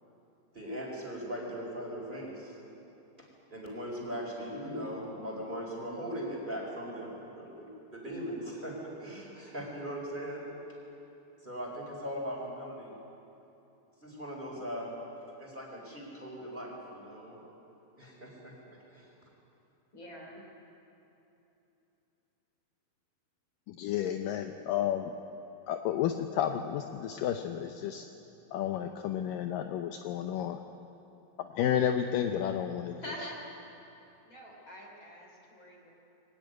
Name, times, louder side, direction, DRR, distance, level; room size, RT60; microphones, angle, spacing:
voice 1, 0.5-2.5 3.5-10.6 11.4-12.9 14.0-14.9 15.4-17.4 18.0-18.5 18.9-19.1, equal, 10° right, -2 dB, 4.2 m, -39 dB
voice 2, 19.9-20.4 33.0-33.4 34.2-35.9, equal, 30° left, 0 dB, 3.5 m, -45 dB
voice 3, 23.7-25.1 25.7-28.1 28.5-30.6 31.4-33.0, left 10 dB, 80° left, 6 dB, 2.0 m, -31 dB
23.0 x 17.5 x 9.5 m, 3.0 s
omnidirectional pair, 4.7 m